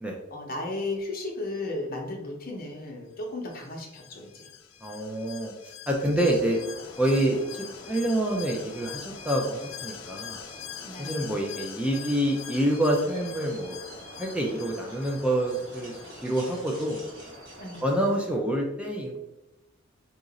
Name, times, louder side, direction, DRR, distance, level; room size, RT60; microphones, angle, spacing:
voice 1, 0.3-4.5 7.3-7.4 10.8-11.3 17.6-17.8, left 2 dB, 50° left, 1 dB, 0.7 m, -35 dB
Alarm, 3.5-17.0 17.3-17.4, left 10 dB, 80° left, 0.4 m, -44 dB
voice 2, 4.8-6.6 7.0-10.4 11.0-13.8 14.2-17.0 17.8-19.2, right 1 dB, 5° right, 0 dB, 0.3 m, -27 dB
sound 1, 6.2-18.4, equal, 70° right, 1.2 m, -46 dB
sound 2, 12.7-14.8 15.0-18.2, right 1 dB, 20° right, 1.3 m, -51 dB
2.9 x 2.5 x 3.9 m, 0.95 s
head